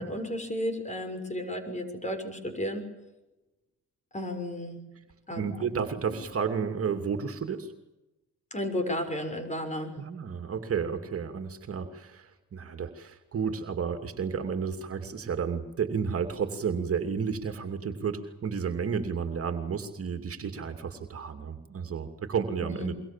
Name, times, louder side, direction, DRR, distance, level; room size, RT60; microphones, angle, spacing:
voice 1, 0.0-2.8 4.1-4.8 5.3-5.7 6.1-6.2 8.5-9.9 22.6-22.9, left 1 dB, 25° left, 8 dB, 6.4 m, -33 dB
voice 2, 5.4-7.7 10.0-23.0, right 6 dB, 50° right, 6 dB, 2.6 m, -32 dB
26.5 x 23.5 x 7.4 m, 1.0 s
cardioid pair, 90°, 30 cm